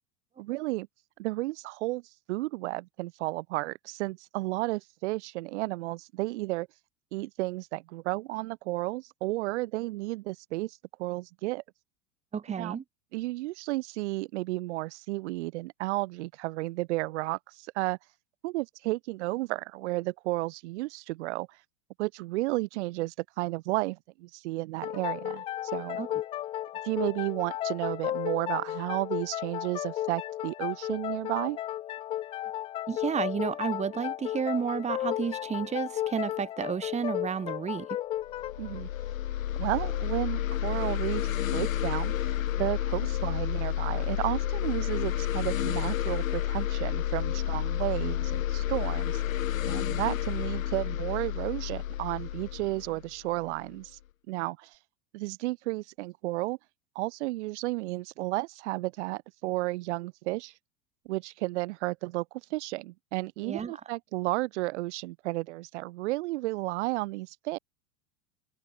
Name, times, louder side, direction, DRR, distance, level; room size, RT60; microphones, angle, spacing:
voice 1, 0.4-0.9 1.2-2.0 2.3-6.7 7.1-11.6 12.6-12.8 13.1-18.0 18.4-21.5 22.0-25.4 25.7-26.0 26.8-31.6 38.6-38.9 39.6-49.2 49.7-54.0 54.3-54.7 55.1-56.6 57.0-60.5 61.1-62.3 62.5-67.6, right 20 dB, 50° right, 2.2 m, -32 dB
voice 2, 12.3-12.8 26.0-26.1 32.9-37.9 63.4-63.8, right 7 dB, 15° right, 1.7 m, -31 dB
sound 1, 24.8-40.2, left 13 dB, 15° left, 0.4 m, -34 dB
sound 2, 38.3-53.8, left 12 dB, 65° left, 0.9 m, -30 dB
figure-of-eight pair, 85°, 43 cm